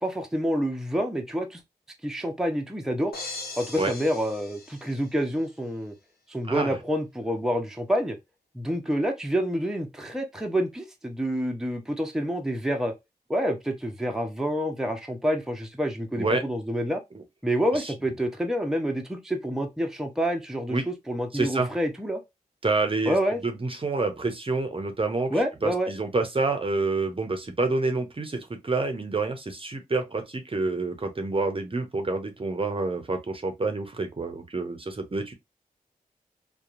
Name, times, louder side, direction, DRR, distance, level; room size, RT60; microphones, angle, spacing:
voice 1, 0.0-1.6 2.0-3.1 3.6-5.9 6.3-8.2 8.5-12.9 13.3-17.0 17.4-22.2 23.0-23.4 25.3-25.9, equal, 5° right, 0.7 m, -28 dB
sound 1, 3.1-5.4, left 3 dB, 75° left, 1.0 m, -40 dB
voice 2, 21.3-21.7 22.6-23.2 23.4-35.3, right 3 dB, 35° right, 0.7 m, -28 dB
2.8 x 2.3 x 2.4 m
cardioid pair, 40°, 16 cm